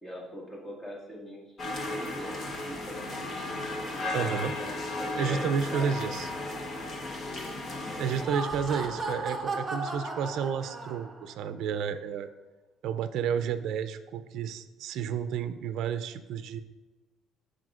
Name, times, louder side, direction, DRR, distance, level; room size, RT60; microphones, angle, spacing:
voice 1, 0.0-3.3 3.9-4.7 5.0-6.2 7.6-8.1 8.8-9.0, equal, 20° left, -4 dB, 1.9 m, -43 dB
sound 1, 1.6-8.2, left 2 dB, 35° left, 1.1 m, -35 dB
voice 2, 4.1-4.5 5.1-6.3 8.0-12.3 12.8-16.6, right 7 dB, 70° right, 11 dB, 0.4 m, -31 dB
Laughter, 8.0-11.3, right 2 dB, 15° right, 0.9 m, -35 dB
13.5 x 4.9 x 2.4 m, 1.2 s
cardioid pair, 150°, 0 cm